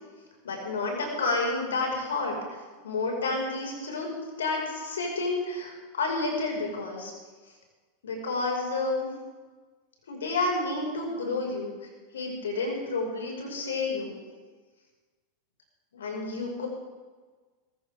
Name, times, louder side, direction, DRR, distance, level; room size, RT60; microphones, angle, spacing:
voice 1, 0.4-2.4 2.8-4.1 4.4-7.1 8.0-9.1 10.1-14.2 15.9-16.7, left 3 dB, 65° left, 0 dB, 5.5 m, -30 dB
22.0 x 15.0 x 3.6 m, 1.4 s
figure-of-eight pair, 90°, 0 cm